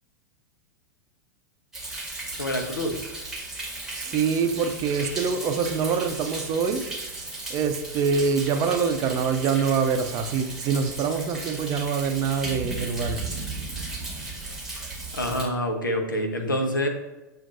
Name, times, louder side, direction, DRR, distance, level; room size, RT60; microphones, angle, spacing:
Thunder, 1.7-15.5, right 2 dB, 5° right, 1.2 m, -36 dB
voice 1, 2.4-3.0 15.1-16.9, equal, 85° left, 4 dB, 0.7 m, -26 dB
voice 2, 3.9-6.9 7.5-13.3, right 5 dB, 35° right, 7 dB, 0.5 m, -25 dB
7.2 x 2.5 x 2.5 m, 1.1 s
figure-of-eight pair, 95°, 10 cm